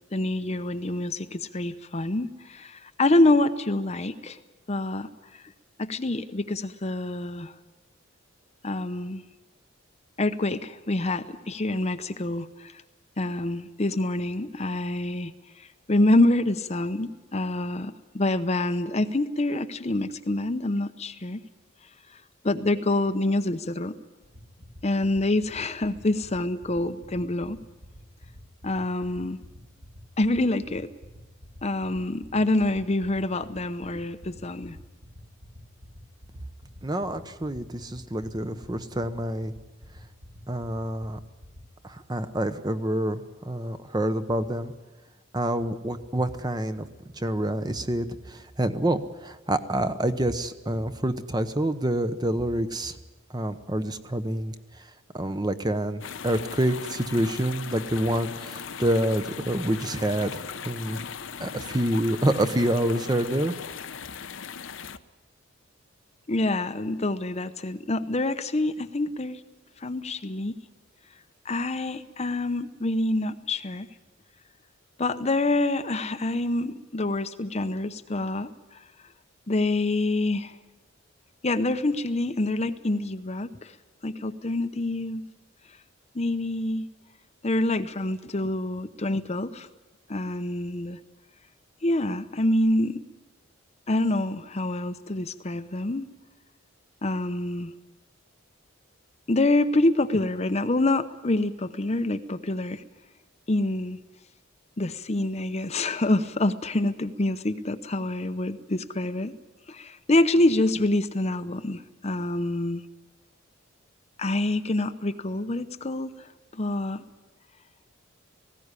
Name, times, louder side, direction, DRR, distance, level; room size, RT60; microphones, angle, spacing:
voice 1, 0.1-4.4 4.7-5.4 5.8-7.5 8.6-9.2 10.2-12.8 13.2-21.4 22.4-24.0 24.8-27.6 28.6-29.4 30.2-30.9 31.6-34.8 66.3-69.4 69.8-70.6 71.4-73.9 75.0-78.8 79.5-80.6 81.4-83.7 84.0-85.3 86.1-86.9 87.4-89.7 90.1-91.0 91.8-93.0 93.9-96.1 97.0-97.7 99.3-102.8 103.5-104.0 104.8-109.4 109.7-112.9 114.2-117.0, left 2 dB, 30° left, 10 dB, 0.7 m, -26 dB
sound 1, 24.2-41.6, left 1 dB, 70° right, 6.2 m, -46 dB
voice 2, 36.8-39.5 40.5-41.2 41.8-44.7 45.3-46.9 47.1-53.0 53.3-54.9 55.1-61.1 61.4-63.6, right 1 dB, 20° right, 10 dB, 0.9 m, -27 dB
sound 2, 56.0-65.0, left 6 dB, 65° left, 0.8 m, -38 dB
19.0 x 16.5 x 9.8 m, 1.2 s
head